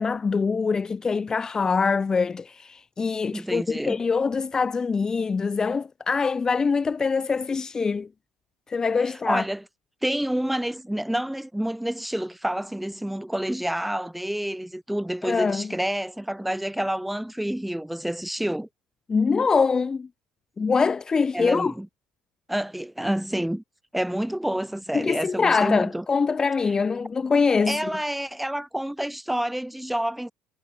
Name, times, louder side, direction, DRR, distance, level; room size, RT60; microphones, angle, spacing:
voice 1, 0.0-8.1 8.7-9.4 15.2-15.7 19.1-20.1 20.6-21.7 24.9-27.8, left 5 dB, 30° left, 2.8 m, -24 dB
voice 2, 3.3-4.0 9.0-9.6 10.0-18.7 21.3-21.9 22.5-23.6 23.9-26.0 26.6-26.7 27.7-30.3, right 1 dB, 5° right, 6.0 m, -28 dB
hypercardioid pair, 75°, 2 cm